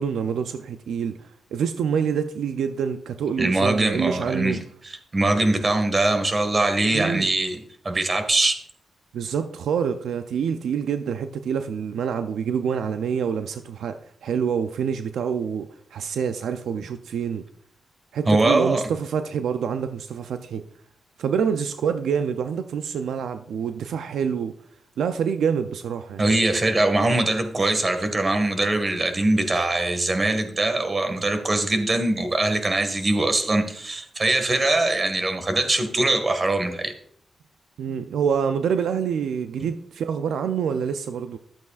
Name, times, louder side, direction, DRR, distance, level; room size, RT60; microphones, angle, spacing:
voice 1, 0.0-4.6 6.9-7.3 9.1-17.4 18.1-20.6 21.2-24.5 25.0-26.3 37.8-41.4, right 7 dB, 85° right, 0.4 m, -26 dB
voice 2, 3.4-4.6 4.8-7.6 7.8-8.6 18.3-18.8 26.2-36.9, right 2 dB, 40° right, 1.7 m, -22 dB
11.5 x 8.1 x 2.4 m
cardioid pair, 50°, 0 cm